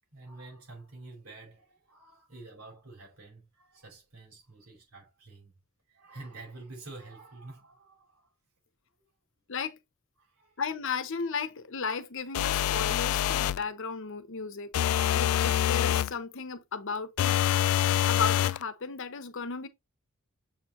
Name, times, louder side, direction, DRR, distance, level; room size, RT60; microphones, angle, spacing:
voice 1, 0.1-5.6 5.9-8.3 9.0-9.1 10.2-10.6, right 2 dB, 80° right, 4.9 m, -48 dB
voice 2, 10.6-17.4 18.1-19.7, left 5 dB, 60° left, 0.8 m, -35 dB
sound 1, 12.3-13.6 14.7-16.1 17.2-18.6, left 11 dB, 80° left, 0.3 m, -26 dB
7.2 x 4.3 x 3.1 m
head